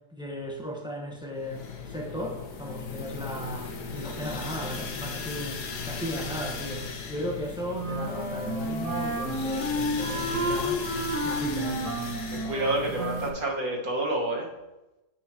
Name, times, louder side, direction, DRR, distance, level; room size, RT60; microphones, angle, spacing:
voice 1, 0.1-10.8 11.2-11.9, equal, 5° right, -1 dB, 1.1 m, -36 dB
sound 1, 1.4-13.3, left 5 dB, 75° left, 1.5 m, -37 dB
Wind instrument woodwind instrument, 7.7-13.4, right 1 dB, 75° right, 2.9 m, -31 dB
voice 2, 12.3-14.5, right 2 dB, 60° right, -2 dB, 2.1 m, -29 dB
9.3 x 8.2 x 3.0 m, 1.0 s
omnidirectional pair, 1.7 m